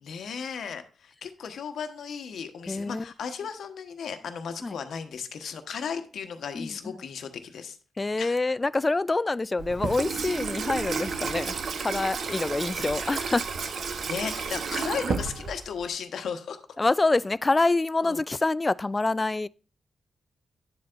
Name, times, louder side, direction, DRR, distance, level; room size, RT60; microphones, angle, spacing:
voice 1, 0.0-7.8 8.2-8.4 14.1-16.7 18.0-18.2, left 6 dB, 70° left, 1.1 m, -35 dB
voice 2, 2.7-3.1 4.6-4.7 6.5-6.9 8.0-13.5 16.8-19.5, left 3 dB, 30° left, 0.4 m, -26 dB
Water tap faucet / Sink (filling or washing), 9.6-15.9, right 5 dB, 65° right, 1.0 m, -31 dB
11.0 x 7.6 x 2.5 m
hypercardioid pair, 40°, 0 cm